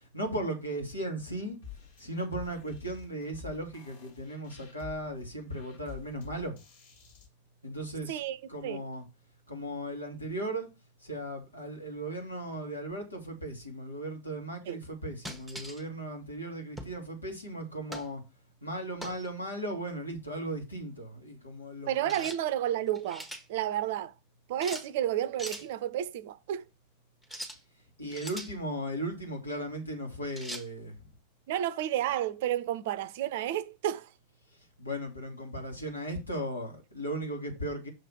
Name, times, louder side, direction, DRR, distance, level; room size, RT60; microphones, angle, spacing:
voice 1, 0.1-1.6 2.0-6.6 7.6-8.2 8.5-9.0 9.5-10.7 11.0-18.2 18.6-22.2 28.0-30.9 34.8-37.9, right 1 dB, 80° left, 2.2 m, -37 dB
sound 1, 1.6-7.3, left 8 dB, 60° left, 1.8 m, -49 dB
voice 2, 8.1-8.8 14.6-14.8 21.9-24.1 24.5-26.7 31.5-34.1, right 11 dB, 50° right, 0.5 m, -31 dB
sound 2, 15.3-15.8 16.8-17.0 17.9-18.1 19.0-19.3 22.1-22.4 22.9-23.5 24.6-24.9 25.4-25.7 27.2-27.6 28.1-28.5 30.4-30.7, equal, 5° left, 1.1 m, -41 dB
6.3 x 3.3 x 6.0 m
figure-of-eight pair, 90°, 0 cm